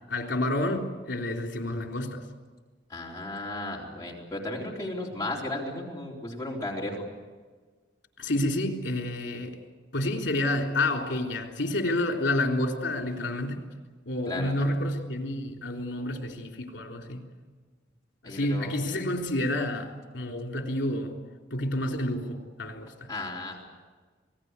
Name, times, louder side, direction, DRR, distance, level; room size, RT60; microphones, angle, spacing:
voice 1, 0.1-2.3 8.2-9.6 9.9-13.7 14.0-17.3 18.2-21.2 21.5-23.1, left 1 dB, 80° left, 3.4 m, -29 dB
voice 2, 2.9-7.0 14.3-14.7 18.2-18.8 23.1-23.7, left 2 dB, 20° left, 4.0 m, -35 dB
27.0 x 19.0 x 8.3 m
head